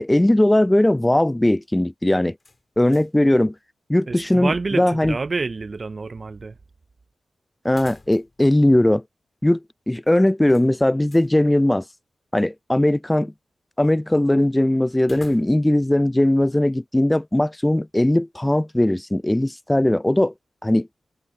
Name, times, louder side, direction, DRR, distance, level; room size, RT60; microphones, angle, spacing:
voice 1, 0.0-2.4 2.8-3.5 3.9-5.2 7.6-9.0 9.4-9.6 9.9-11.8 12.3-13.3 13.8-20.3 20.6-20.9, left 1 dB, 15° left, 0.4 m, -19 dB
sound 1, 2.4-3.3 3.6-3.7 7.6-8.5 8.8-8.9 10.5-11.3 15.0-15.8, left 3 dB, 40° left, 3.7 m, -47 dB
voice 2, 4.1-6.6, right 3 dB, 50° right, 0.5 m, -28 dB
cardioid pair, 45°, 0 cm